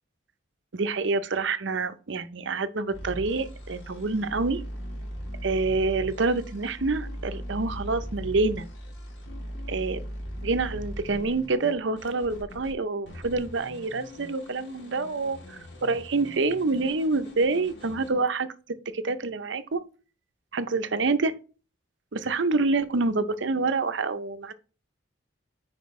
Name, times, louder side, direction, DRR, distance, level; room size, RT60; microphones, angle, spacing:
voice 1, 0.7-4.6 5.4-8.7 9.7-10.0 10.4-18.5 18.9-19.8 20.5-21.3 22.1-24.5, right 3 dB, 70° right, 0.7 m, -27 dB
sound 1, 2.9-12.7 13.1-18.1, equal, 60° left, 2.6 m, -39 dB
9.4 x 5.1 x 3.2 m
head